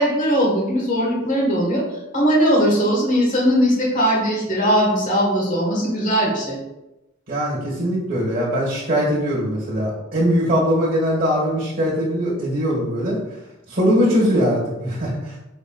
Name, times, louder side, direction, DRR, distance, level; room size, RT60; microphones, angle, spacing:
voice 1, 0.0-1.8 2.1-6.6, equal, 40° left, -3 dB, 1.3 m, -19 dB
voice 2, 7.3-13.2 13.7-15.4, equal, 45° right, -5 dB, 1.3 m, -21 dB
5.1 x 3.7 x 2.3 m, 0.96 s
head